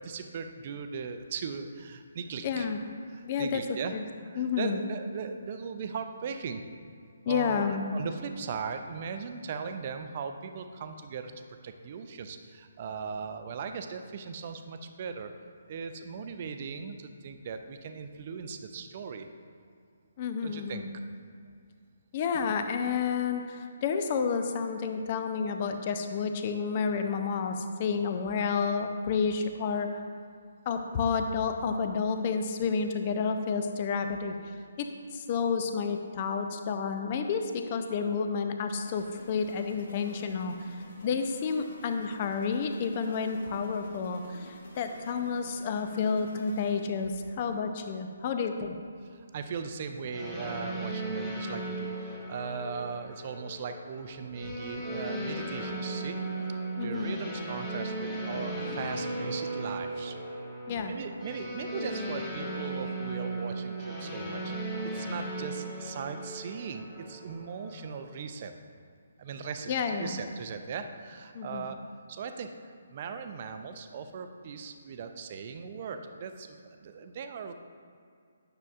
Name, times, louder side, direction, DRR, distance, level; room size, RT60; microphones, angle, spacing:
voice 1, 0.0-2.7 3.1-3.9 4.2-6.6 7.3-15.3 15.7-19.3 20.4-20.8 49.0-56.2 56.8-60.2 60.8-64.5 64.8-68.5 69.2-69.7 70.0-71.8 72.1-77.5, right 5 dB, 40° right, 7 dB, 0.5 m, -38 dB
voice 2, 2.4-2.8 3.2-3.6 3.9-4.1 4.4-4.8 7.3-7.8 20.2-20.9 22.1-29.9 30.7-34.3 34.8-34.9 35.1-40.8 41.0-48.8 56.8-57.2 60.7-61.0 69.7-70.2 71.3-71.7, left 5 dB, 35° left, 6 dB, 0.6 m, -30 dB
sound 1, 38.8-47.1, left 1 dB, 60° left, 1.3 m, -50 dB
sound 2, 50.1-68.2, right 2 dB, 10° left, 1.6 m, -37 dB
9.6 x 6.8 x 2.4 m, 2.2 s
figure-of-eight pair, 140°, 0 cm